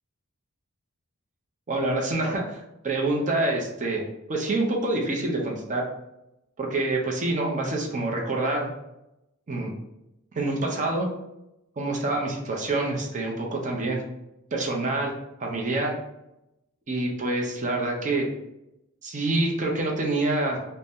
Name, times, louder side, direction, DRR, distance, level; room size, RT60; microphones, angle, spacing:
voice 1, 1.7-4.0 4.3-5.8 6.6-8.7 9.5-9.7 10.3-11.1 11.8-14.0 14.5-15.1 15.4-15.9 16.9-18.3 19.0-20.6, right 2 dB, 35° right, 0 dB, 0.6 m, -26 dB
2.6 x 2.1 x 3.5 m, 0.88 s
head